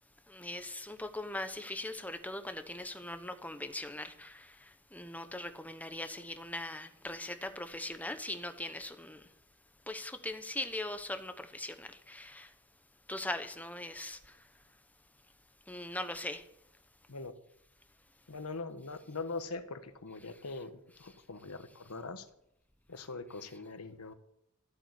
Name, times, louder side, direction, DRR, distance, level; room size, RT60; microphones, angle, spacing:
voice 1, 0.3-9.3 9.9-12.5 13.1-14.5 15.7-16.4 20.2-20.6 20.9-21.2 23.4-23.5, left 1 dB, 5° left, 1.0 m, -41 dB
voice 2, 18.3-22.3 22.9-24.1, left 3 dB, 80° left, 1.3 m, -42 dB
13.5 x 8.5 x 8.2 m
head